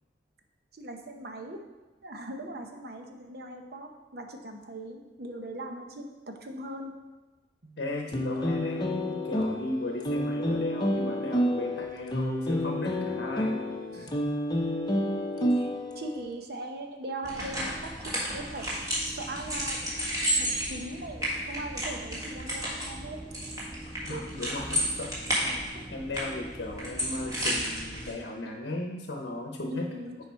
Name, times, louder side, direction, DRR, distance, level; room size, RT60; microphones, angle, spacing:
voice 1, 0.7-1.6 2.0-6.1 6.4-6.9 7.6-7.8 13.9-14.1 15.4-18.7 19.0-19.9 20.4-23.5 24.1-24.2 29.7-30.2, right 1 dB, 60° right, 4 dB, 0.8 m, -40 dB
voice 2, 7.8-13.6 13.9-14.1 24.0-29.9, left 2 dB, 80° left, 1 dB, 0.8 m, -36 dB
sound 1, 8.1-16.2, equal, 25° left, 0.7 m, -29 dB
sound 2, 17.2-28.1, equal, 20° right, 1.7 m, -32 dB
7.0 x 4.8 x 4.6 m, 1.2 s
head